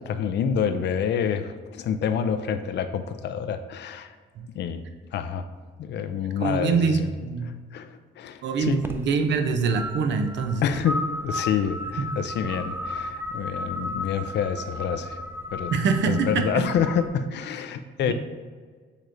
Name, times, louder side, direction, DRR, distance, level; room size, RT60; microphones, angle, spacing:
voice 1, 0.0-4.1 4.5-4.8 5.1-5.5 5.8-7.1 7.4-8.8 10.6-15.2 15.5-15.7 16.1-18.1, left 7 dB, 60° left, 10 dB, 0.4 m, -27 dB
voice 2, 6.4-7.6 8.4-10.7 12.0-12.1 15.7-16.7 18.0-18.1, right 5 dB, 65° right, 6 dB, 0.6 m, -24 dB
sound 1, 8.6-17.1, left 1 dB, 10° right, 0.4 m, -35 dB
6.5 x 3.1 x 2.6 m, 1.5 s
cardioid pair, 90°, 20 cm